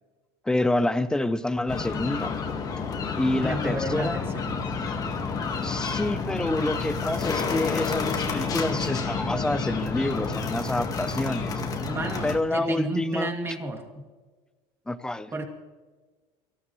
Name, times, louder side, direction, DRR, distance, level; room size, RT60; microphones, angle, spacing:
voice 1, 0.4-2.4 3.1-4.2 5.6-11.5 12.2-13.3 14.9-15.3, left 1 dB, 5° left, 13 dB, 0.6 m, -27 dB
sound 1, 1.7-12.4, left 4 dB, 30° left, 1.7 m, -29 dB
voice 2, 3.4-4.6 11.8-14.1 15.3-15.4, right 1 dB, 20° right, 2 dB, 2.5 m, -32 dB
24.5 x 15.5 x 3.2 m, 1.3 s
cardioid pair, 140°, 13 cm